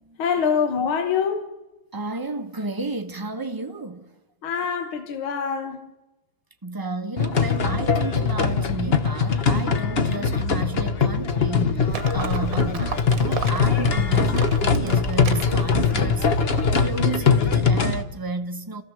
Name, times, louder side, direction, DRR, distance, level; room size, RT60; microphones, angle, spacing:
voice 1, 0.2-1.5 4.4-5.8, left 6 dB, 75° left, 2.2 m, -24 dB
voice 2, 1.9-4.0 6.6-16.3 16.7-18.8, right 2 dB, 15° right, 0.8 m, -32 dB
sound 1, 7.2-18.0, left 5 dB, 40° left, 0.9 m, -21 dB
Livestock farm animals working animals, 11.9-17.1, right 6 dB, 45° right, 1.6 m, -35 dB
29.5 x 15.5 x 7.3 m
omnidirectional pair, 2.3 m